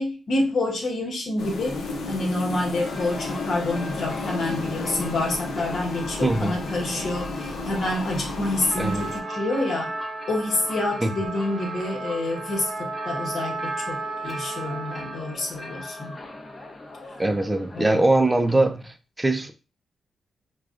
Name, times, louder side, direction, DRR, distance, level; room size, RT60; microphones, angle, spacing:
voice 1, 0.0-1.8 2.1-9.9 10.3-13.6 13.9-16.1 17.7-18.0, left 2 dB, 65° left, 0 dB, 1.2 m, -27 dB
sound 1, 1.4-9.2, left 2 dB, 90° left, 0.7 m, -32 dB
sound 2, 2.4-18.9, left 2 dB, 40° left, 0.8 m, -40 dB
voice 2, 6.2-6.5 8.8-9.1 11.0-11.1 17.2-19.5, right 2 dB, 15° right, 7 dB, 0.5 m, -22 dB
Trumpet, 8.7-15.3, right 3 dB, 65° right, 0.5 m, -34 dB
4.7 x 2.3 x 2.5 m, 0.33 s
cardioid pair, 75°, 0 cm